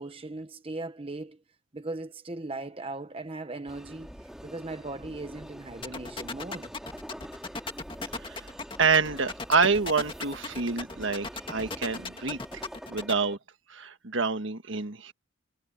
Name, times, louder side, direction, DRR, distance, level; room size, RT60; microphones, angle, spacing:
voice 1, 0.0-1.4 1.7-6.7, right 2 dB, 25° right, 0.9 m, -38 dB
sound 1, 3.7-13.4, equal, 5° right, 2.6 m, -45 dB
sound 2, 5.8-13.1, left 3 dB, 25° left, 2.2 m, -36 dB
voice 2, 8.1-8.5 8.8-12.6 12.9-13.4 13.7-15.1, right 4 dB, 65° right, 1.5 m, -27 dB
head